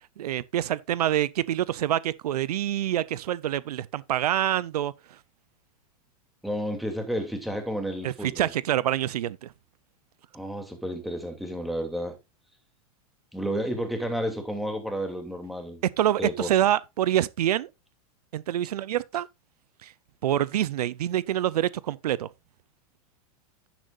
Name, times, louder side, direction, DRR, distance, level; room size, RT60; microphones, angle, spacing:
voice 1, 0.2-4.9 8.0-9.5 16.0-17.7 18.3-19.3 19.8-19.9 20.2-22.3, right 12 dB, 90° right, 0.6 m, -26 dB
voice 2, 6.4-8.5 10.3-12.2 13.3-15.8 16.2-16.5, equal, ahead, 2.6 m, -31 dB
10.5 x 10.0 x 2.5 m
hypercardioid pair, 130°, 19 cm